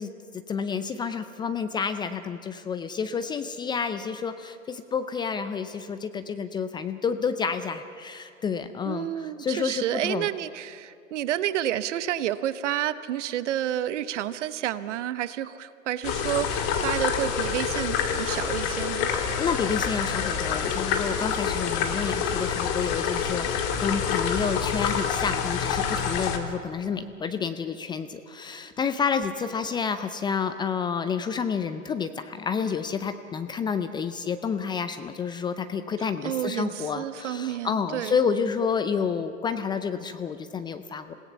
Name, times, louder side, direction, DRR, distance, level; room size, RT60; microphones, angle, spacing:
voice 1, 0.0-10.3 19.4-41.1, left 6 dB, 10° left, 10 dB, 0.5 m, -29 dB
voice 2, 8.9-19.1 36.0-38.2, right 12 dB, 55° right, 14 dB, 1.0 m, -30 dB
sound 1, 16.0-26.4, left 7 dB, 40° left, 2.2 m, -27 dB
27.0 x 17.0 x 7.0 m, 2.4 s
figure-of-eight pair, 105°, 42 cm